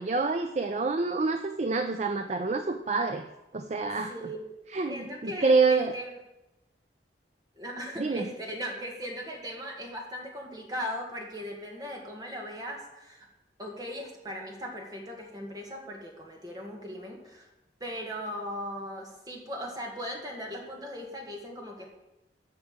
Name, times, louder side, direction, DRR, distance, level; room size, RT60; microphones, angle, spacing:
voice 1, 0.0-3.3 3.5-4.1 4.7-5.9 8.0-8.3, right 4 dB, 40° right, 8 dB, 0.5 m, -27 dB
voice 2, 4.9-6.2 7.6-13.2 13.6-17.5 17.8-21.9, equal, 20° right, 0 dB, 1.8 m, -38 dB
8.6 x 5.9 x 7.3 m, 0.95 s
head